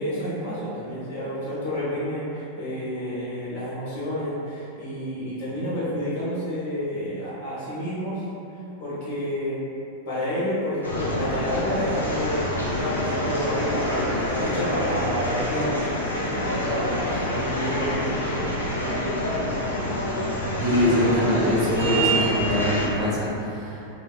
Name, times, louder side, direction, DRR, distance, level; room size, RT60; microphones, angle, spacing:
voice 1, 0.0-8.2 8.8-9.6 10.0-12.4 12.8-19.1, equal, 50° left, -10 dB, 0.9 m, -30 dB
sound 1, 10.8-22.9, equal, 80° left, 0.4 m, -26 dB
voice 2, 20.6-23.9, left 1 dB, 30° right, -5 dB, 0.4 m, -23 dB
2.5 x 2.1 x 2.3 m, 2.8 s
figure-of-eight pair, 90°, 0 cm